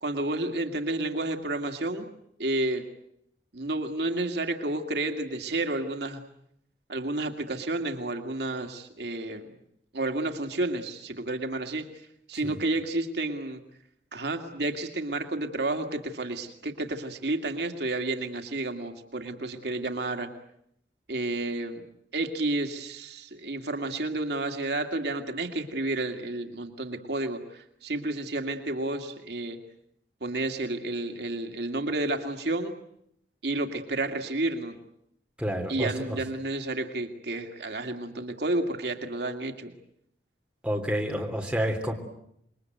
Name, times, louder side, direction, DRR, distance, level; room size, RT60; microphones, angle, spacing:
voice 1, 0.0-2.1 2.4-2.8 3.5-6.2 6.9-9.5 9.9-11.9 12.3-13.6 14.1-20.3 21.1-21.9 22.1-29.6 30.2-32.7 33.4-34.8 35.7-39.7, right 2 dB, 70° right, 5 dB, 2.3 m, -31 dB
voice 2, 35.4-36.2 40.6-41.9, equal, 5° right, 2 dB, 3.4 m, -29 dB
27.5 x 22.0 x 9.3 m, 0.74 s
head